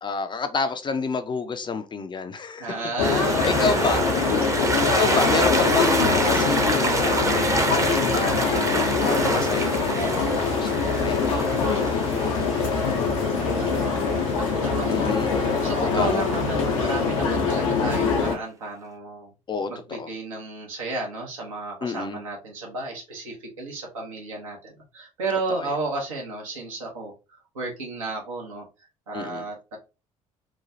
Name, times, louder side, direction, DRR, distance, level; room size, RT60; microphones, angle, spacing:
voice 1, 0.0-2.9 3.4-4.3 4.8-7.7 8.1-12.8 14.9-15.3 15.9-16.3 19.5-19.7 20.0-20.1 21.8-22.2 25.5-25.7 29.1-29.5, left 4 dB, 30° left, 0.5 m, -30 dB
voice 2, 2.6-4.2 7.8-8.2 13.3-19.3 19.7-28.6 29.1-29.8, right 3 dB, 80° right, 1.0 m, -33 dB
sound 1, 3.0-18.4, left 5 dB, 75° left, 0.7 m, -24 dB
sound 2, 3.0-14.5, right 2 dB, 20° right, 0.7 m, -27 dB
sound 3, 4.0-16.5, right 2 dB, 55° right, 1.6 m, -42 dB
3.1 x 2.2 x 2.6 m
figure-of-eight pair, 50°, 17 cm